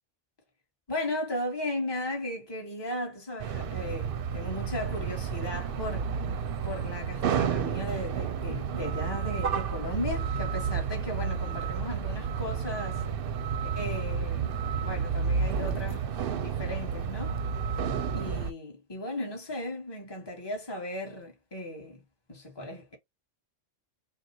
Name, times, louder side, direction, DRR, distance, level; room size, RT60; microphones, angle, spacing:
voice 1, 0.9-6.2 6.6-13.0 13.7-17.4 18.1-22.0 22.3-23.0, left 1 dB, 20° left, 1.6 m, -36 dB
sound 1, 3.4-18.5, right 6 dB, 60° right, 0.7 m, -31 dB
6.5 x 2.3 x 3.0 m
omnidirectional pair, 1.2 m